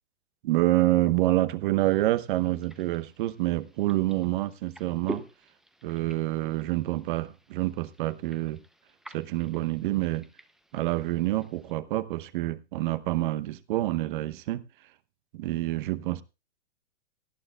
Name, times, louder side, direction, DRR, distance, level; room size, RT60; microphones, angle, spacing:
voice 1, 0.4-5.3 5.8-8.6 9.1-10.3 10.7-14.6 15.3-16.2, right 16 dB, 45° right, 0.9 m, -27 dB
sound 1, 1.8-11.7, right 1 dB, ahead, 0.6 m, -47 dB
18.0 x 11.5 x 2.4 m
hypercardioid pair, 125°, 34 cm